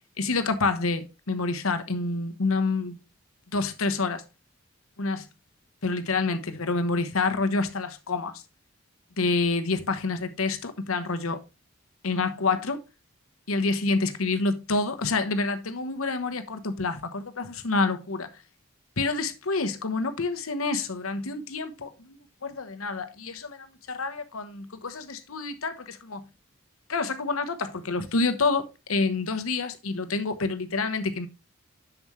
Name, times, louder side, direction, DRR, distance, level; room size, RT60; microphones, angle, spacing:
voice 1, 0.2-3.0 3.5-4.2 5.0-5.3 5.8-8.4 9.2-11.4 12.0-12.8 13.5-18.3 19.0-23.7 24.0-26.2 26.9-31.3, left 3 dB, 85° left, 1.1 m, -28 dB
7.2 x 7.1 x 3.1 m
head